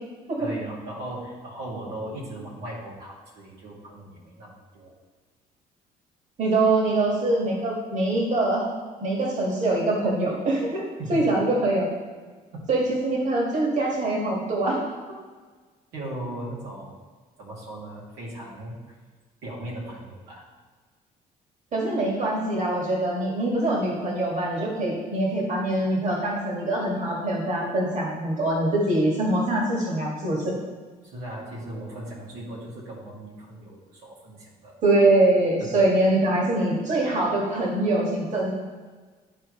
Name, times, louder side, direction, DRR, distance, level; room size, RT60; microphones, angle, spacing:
voice 1, 0.4-4.9 11.0-11.2 12.5-12.6 15.9-17.0 17.4-18.9 19.4-20.4 31.1-34.7 35.6-35.8, right 1 dB, 90° right, -5 dB, 2.5 m, -37 dB
voice 2, 6.4-8.7 9.0-10.8 11.1-11.9 12.7-14.8 21.7-30.5 34.8-38.5, right 2 dB, 50° right, -3 dB, 2.0 m, -23 dB
13.0 x 4.7 x 3.2 m, 1.4 s
cardioid pair, 105°, 16 cm